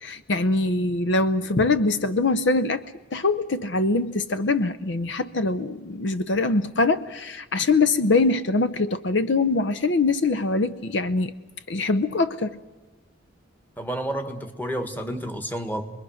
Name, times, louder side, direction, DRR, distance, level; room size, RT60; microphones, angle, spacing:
voice 1, 0.0-11.3 11.7-12.6, left 3 dB, 65° left, 12 dB, 0.7 m, -23 dB
voice 2, 13.8-15.8, right 1 dB, 10° left, 7 dB, 1.6 m, -30 dB
27.5 x 21.5 x 6.4 m, 1.2 s
head